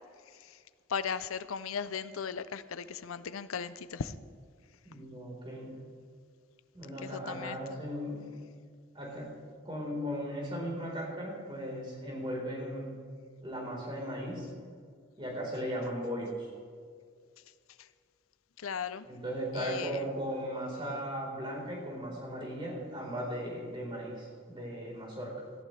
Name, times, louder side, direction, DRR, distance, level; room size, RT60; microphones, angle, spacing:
voice 1, 0.9-4.1 7.0-7.6 18.6-19.1 19.5-20.0, left 6 dB, 85° left, 14 dB, 0.6 m, -37 dB
voice 2, 4.8-5.8 6.7-8.3 8.9-9.4 9.6-12.9 13.4-14.5 15.2-16.3 19.1-25.4, equal, 25° right, -3 dB, 4.3 m, -37 dB
18.0 x 14.5 x 3.3 m, 2.1 s
head